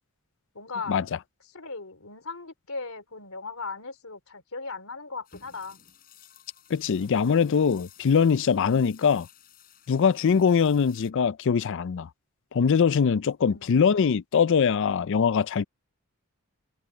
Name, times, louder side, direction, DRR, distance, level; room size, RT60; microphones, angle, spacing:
voice 1, 0.5-1.0 1.5-5.8 13.4-13.8, left 4 dB, 75° left, 3.7 m, -38 dB
sound 1, 5.2-11.1, left 8 dB, 45° left, 4.9 m, -55 dB
voice 2, 6.7-9.3 9.9-12.1 12.5-15.6, left 6 dB, 60° left, 0.4 m, -22 dB
head